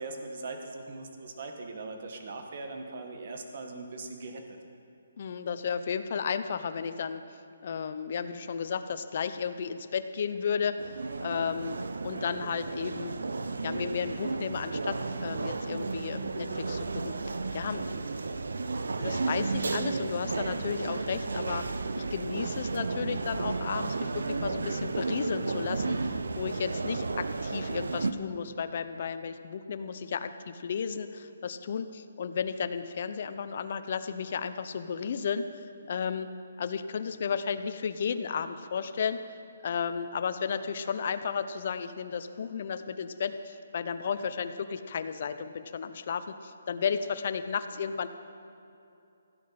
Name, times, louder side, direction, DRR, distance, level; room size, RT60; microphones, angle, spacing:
voice 1, 0.0-4.6, right 3 dB, 45° right, 4 dB, 1.5 m, -40 dB
voice 2, 5.2-7.2 7.6-10.8 11.2-11.8 12.0-13.2 13.6-17.1 17.5-17.8 19.0-21.6 21.9-36.3 36.6-39.2 39.6-48.1, left 6 dB, 45° left, 10 dB, 0.6 m, -33 dB
sound 1, 10.8-28.1, right 3 dB, 85° right, 0.7 m, -33 dB
16.0 x 9.6 x 5.8 m, 2.7 s
hypercardioid pair, 170°, 0 cm